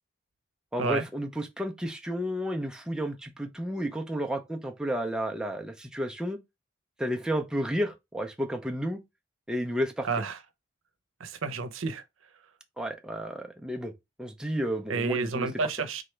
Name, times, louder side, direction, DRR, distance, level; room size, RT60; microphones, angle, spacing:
voice 1, 0.7-6.4 7.0-9.0 9.5-10.1 12.8-13.9 14.2-15.5, equal, 5° right, 0.5 m, -32 dB
voice 2, 10.0-10.4 11.2-12.0 14.9-16.0, right 4 dB, 90° right, 0.7 m, -30 dB
3.8 x 3.3 x 3.2 m
head